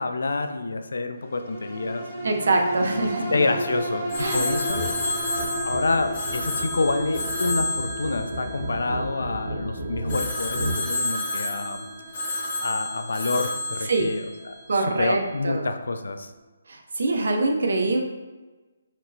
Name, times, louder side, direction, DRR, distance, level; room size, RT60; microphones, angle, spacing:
voice 1, 0.0-2.0 2.9-4.9 5.6-11.8 12.6-16.3, left 3 dB, 80° left, 7 dB, 0.3 m, -28 dB
sound 1, 1.2-15.9 16.3-16.4, right 1 dB, 10° right, 0.5 m, -35 dB
voice 2, 2.2-3.4 4.2-4.5 13.9-14.1 14.7-15.7 16.7-18.0, right 2 dB, 65° right, 3 dB, 0.5 m, -24 dB
Telephone, 4.1-9.3 10.1-15.0, left 1 dB, 25° left, 0.8 m, -31 dB
sound 2, 4.7-4.9 5.2-10.8, right 1 dB, 40° right, 1.4 m, -33 dB
4.3 x 2.0 x 2.6 m, 1.2 s
hypercardioid pair, 170°, 0 cm